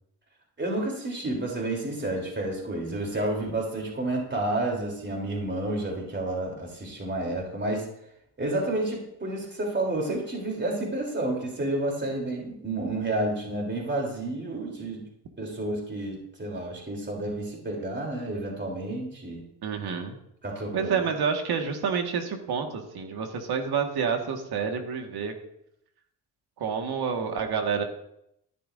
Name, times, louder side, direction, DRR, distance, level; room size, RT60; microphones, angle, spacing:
voice 1, 0.6-7.9 8.4-15.0 15.4-19.4 20.4-21.0, right 2 dB, 25° right, -1 dB, 3.2 m, -30 dB
voice 2, 19.6-20.2 20.7-25.3 26.6-27.8, right 6 dB, 70° right, 4 dB, 1.7 m, -28 dB
13.0 x 11.0 x 2.6 m, 0.77 s
cardioid pair, 80°, 40 cm